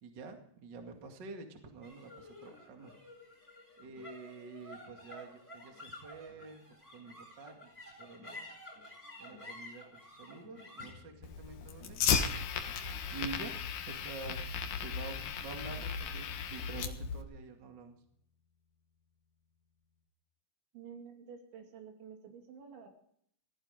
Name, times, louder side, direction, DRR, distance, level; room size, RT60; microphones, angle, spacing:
voice 1, 0.0-2.9 3.8-6.7 6.9-8.5 9.2-12.0 13.1-13.6 13.8-14.5 14.8-18.0, right 4 dB, 50° right, 5 dB, 1.2 m, -47 dB
sound 1, 1.8-18.4, left 1 dB, 5° right, 7.2 m, -53 dB
Fire, 11.2-17.2, left 7 dB, 70° left, 2.0 m, -35 dB
voice 2, 20.7-22.9, right 6 dB, 70° right, 4 dB, 4.7 m, -50 dB
17.0 x 15.5 x 5.1 m, 0.67 s
omnidirectional pair, 5.7 m